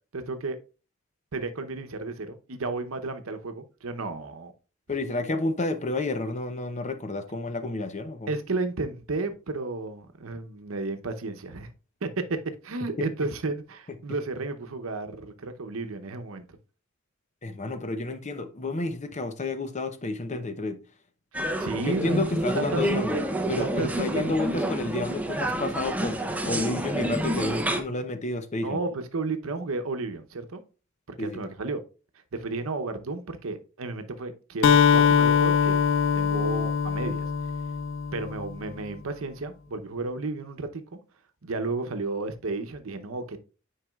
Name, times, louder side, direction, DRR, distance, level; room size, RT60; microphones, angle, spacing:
voice 1, 0.1-0.6 1.3-4.5 8.3-11.7 12.0-12.2 12.6-16.6 21.3-22.2 22.6-23.2 23.6-24.4 28.6-30.6 31.1-31.8 32.3-35.8 36.1-37.3 38.1-40.8 41.4-43.4, right 3 dB, 85° right, 0.8 m, -32 dB
voice 2, 4.9-8.3 17.4-20.8 21.8-23.2 23.5-28.8 31.2-31.5, left 2 dB, 35° left, 0.7 m, -30 dB
sound 1, 21.3-27.8, right 1 dB, 5° right, 0.6 m, -29 dB
Acoustic guitar, 34.6-38.5, left 7 dB, 70° left, 0.4 m, -22 dB
9.1 x 4.8 x 2.3 m
head